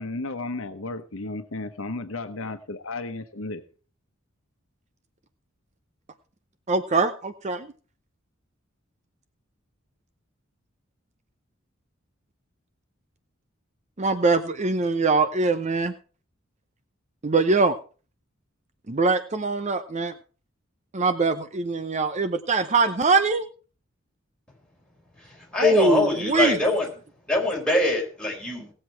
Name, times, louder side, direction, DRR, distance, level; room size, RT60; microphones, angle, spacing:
voice 1, 0.0-3.6, left 2 dB, 80° left, 9 dB, 1.1 m, -33 dB
voice 2, 6.7-7.7 14.0-15.9 17.2-17.7 18.9-20.1 20.9-23.5 25.6-26.6, right 3 dB, 35° right, 11 dB, 0.7 m, -22 dB
voice 3, 25.1-26.9 27.3-28.7, left 2 dB, 5° left, -2 dB, 4.4 m, -24 dB
18.0 x 7.7 x 4.6 m, 0.38 s
head